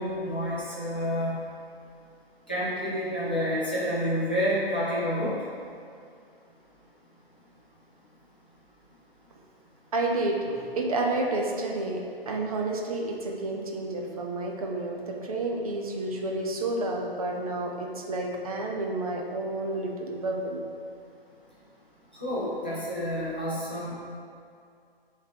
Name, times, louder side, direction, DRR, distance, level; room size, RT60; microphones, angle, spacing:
voice 1, 0.0-1.3 2.5-5.3 22.2-23.9, equal, 10° left, -10 dB, 0.3 m, -29 dB
voice 2, 9.9-20.6, right 2 dB, 35° right, 0 dB, 0.8 m, -30 dB
8.8 x 3.3 x 3.4 m, 2.3 s
figure-of-eight pair, 135°, 30 cm